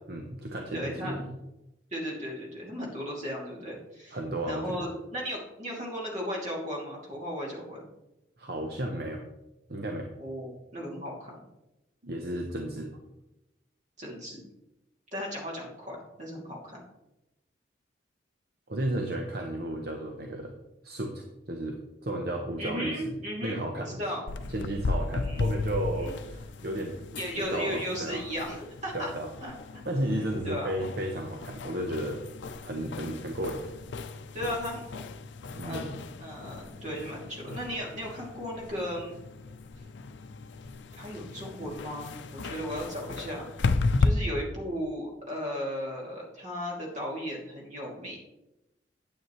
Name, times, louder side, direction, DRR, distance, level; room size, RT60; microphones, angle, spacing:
voice 1, 0.1-1.4 4.1-4.9 8.4-9.2 9.7-10.1 12.0-12.9 18.7-20.5 20.8-23.2 23.4-24.0 24.5-27.0 27.4-28.2 28.9-29.3 29.8-32.2 32.6-33.7 35.6-36.0, right 1 dB, 55° right, 2 dB, 0.9 m, -33 dB
voice 2, 0.7-1.1 1.9-4.2 4.5-7.9 10.2-11.4 14.0-14.4 15.1-16.8 22.6-24.2 25.2-25.5 25.9-26.1 27.2-29.1 29.4-29.8 30.2-30.7 34.3-35.1 35.6-35.8 36.2-39.2 40.9-43.5 44.0-48.2, equal, 40° right, -3 dB, 2.7 m, -36 dB
sound 1, 24.3-44.1, left 3 dB, 80° left, 0.5 m, -35 dB
9.2 x 9.0 x 3.1 m, 0.93 s
head